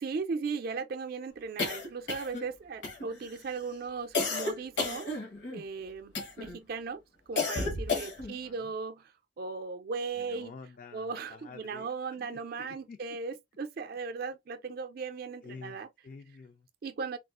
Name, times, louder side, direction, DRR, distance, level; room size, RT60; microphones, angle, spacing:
voice 1, 0.0-7.0 7.3-10.5 10.9-15.9 16.8-17.2, right 4 dB, 55° right, 0.4 m, -37 dB
sound 1, 1.6-2.5 2.8-3.3 4.1-5.6 6.1-6.6 7.4-8.4, left 3 dB, 70° left, 1.1 m, -32 dB
voice 2, 8.2-8.7 10.2-11.9 12.2-13.0 15.4-16.7, left 4 dB, 45° left, 0.3 m, -49 dB
3.5 x 2.4 x 2.4 m
head